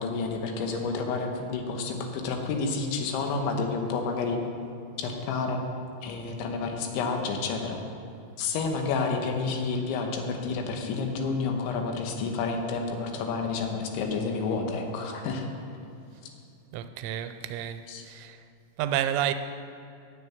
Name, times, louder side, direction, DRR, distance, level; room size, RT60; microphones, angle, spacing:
voice 1, 0.0-4.4 5.0-5.6 6.0-7.8 8.4-15.5 17.9-18.0, left 4 dB, 80° left, 3.4 m, -30 dB
voice 2, 16.7-18.5 18.8-19.3, right 11 dB, 90° right, 3.1 m, -30 dB
9.7 x 8.2 x 8.6 m
omnidirectional pair, 5.4 m